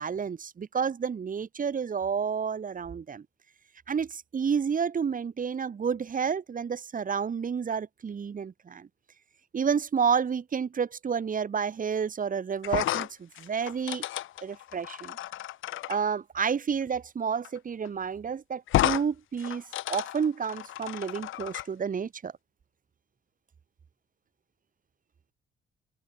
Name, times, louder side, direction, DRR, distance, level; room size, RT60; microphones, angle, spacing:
voice 1, 0.0-3.2 3.9-8.9 9.5-14.0 14.4-15.2 15.9-22.3, right 6 dB, 45° right, 2.9 m, -30 dB
sound 1, 12.6-16.0 17.4-17.6 17.8-17.9 18.7-19.0 19.4-21.6, left 14 dB, 85° left, 3.3 m, -31 dB
open air
cardioid pair, 90°, 20 cm